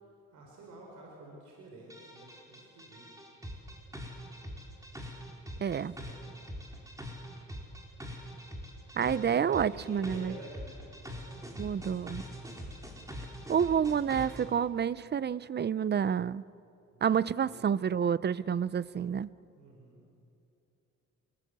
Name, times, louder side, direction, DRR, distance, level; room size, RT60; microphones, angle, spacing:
voice 1, 0.0-3.2 5.5-6.2 9.1-10.9 11.2-11.8 16.9-17.8 19.5-20.0, right 1 dB, 75° right, -1 dB, 5.1 m, -50 dB
sound 1, 1.9-14.5, equal, 10° right, 4.4 m, -43 dB
voice 2, 5.6-5.9 9.0-10.4 11.6-12.2 13.5-16.4 17.0-19.3, right 7 dB, 35° right, 19 dB, 0.6 m, -29 dB
29.0 x 18.0 x 8.2 m, 2.7 s
cardioid pair, 90°, 30 cm